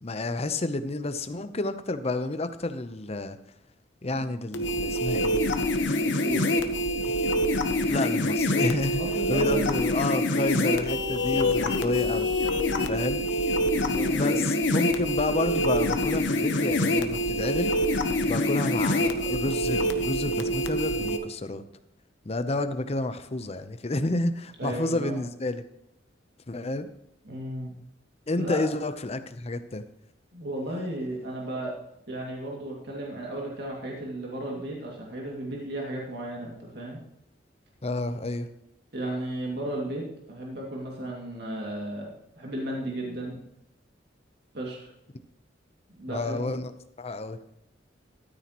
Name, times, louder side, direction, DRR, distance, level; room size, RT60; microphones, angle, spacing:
voice 1, 0.0-3.4 4.0-5.5 7.1-7.2 7.9-9.0 9.3-12.3 12.9-13.2 14.1-17.8 18.3-21.6 22.3-25.6 26.5-26.9 28.3-29.8 37.8-38.5 46.1-46.7 47.0-47.4, left 2 dB, 35° left, 10 dB, 0.7 m, -30 dB
sound 1, 4.5-21.2, left 1 dB, 80° left, 1.0 m, -26 dB
voice 2, 6.0-6.5 8.8-9.7 13.7-14.4 24.6-25.2 27.2-27.7 28.3-28.6 30.3-31.7 32.1-37.0 38.9-43.4 44.5-44.9 46.0-46.5, right 1 dB, 60° right, -2 dB, 2.3 m, -34 dB
13.5 x 9.3 x 3.0 m, 0.84 s
head